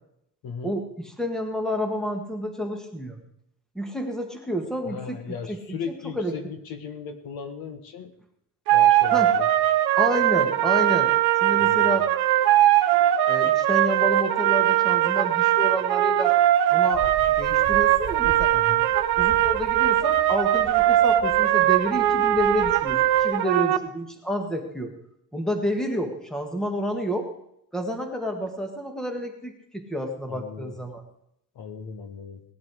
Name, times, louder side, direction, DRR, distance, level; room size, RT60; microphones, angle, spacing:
voice 1, 0.4-0.8 4.8-8.1 8.7-9.5 11.6-12.0 18.5-18.9 30.3-30.7 31.5-32.4, left 6 dB, 60° left, 8 dB, 1.6 m, -37 dB
voice 2, 1.2-3.2 3.8-5.2 5.5-6.5 9.1-9.3 10.0-11.1 11.4-12.1 13.3-16.3 16.7-17.0 17.4-18.5 19.2-24.9 25.3-27.3 27.7-31.0, equal, ahead, 4 dB, 1.7 m, -29 dB
sound 1, 8.7-23.8, right 12 dB, 75° right, 1.0 m, -20 dB
sound 2, 16.9-23.3, right 8 dB, 40° right, 1.7 m, -40 dB
18.5 x 11.0 x 4.8 m, 0.77 s
cardioid pair, 170°, 40 cm